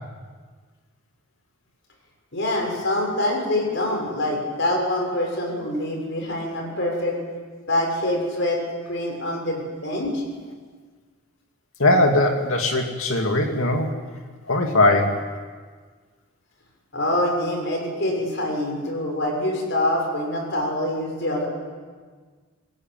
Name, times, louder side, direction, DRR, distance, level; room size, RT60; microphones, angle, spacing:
voice 1, 2.3-7.2 7.6-10.2 16.9-21.5, left 1 dB, 55° left, 1 dB, 6.8 m, -25 dB
voice 2, 11.8-13.9 14.5-15.2, left 2 dB, 75° left, 3 dB, 2.5 m, -20 dB
25.5 x 21.0 x 9.3 m, 1.5 s
head